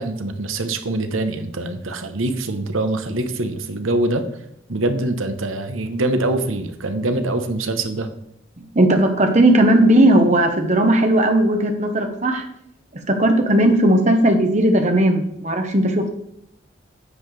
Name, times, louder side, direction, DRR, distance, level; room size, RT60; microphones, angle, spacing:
voice 1, 0.0-4.2 4.7-8.1, right 2 dB, 85° right, 8 dB, 1.0 m, -24 dB
voice 2, 8.7-12.4 13.1-16.1, right 1 dB, 35° right, 5 dB, 1.1 m, -16 dB
9.8 x 7.5 x 3.4 m, 0.78 s
head